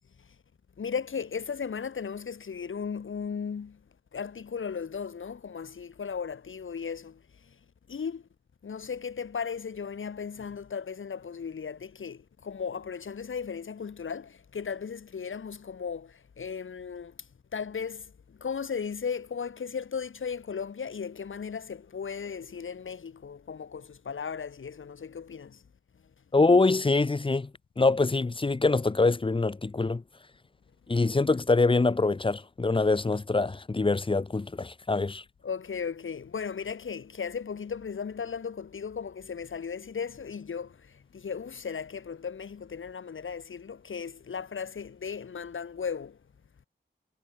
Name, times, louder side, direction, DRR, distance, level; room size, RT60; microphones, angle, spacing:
voice 1, 0.8-3.8 4.1-7.2 7.9-8.2 8.6-17.1 17.5-18.1 18.4-25.6 35.4-40.8 41.1-46.2, left 6 dB, 85° left, 1.9 m, -36 dB
voice 2, 26.3-27.5 27.8-30.0 30.9-35.2, left 3 dB, 25° left, 0.7 m, -24 dB
cardioid pair, 60°, 20 cm